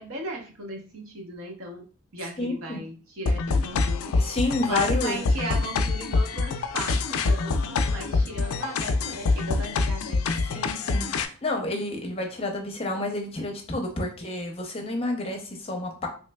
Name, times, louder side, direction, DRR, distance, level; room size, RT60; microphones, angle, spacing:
voice 1, 0.0-1.8 2.1-4.2 4.7-10.4, right 2 dB, 80° right, 0 dB, 0.8 m, -37 dB
voice 2, 2.4-2.8 4.2-5.2 10.4-16.1, left 2 dB, 25° left, 2 dB, 0.6 m, -30 dB
sound 1, 3.3-11.3, left 3 dB, 80° left, 0.3 m, -25 dB
3.1 x 3.0 x 2.2 m, 0.39 s
head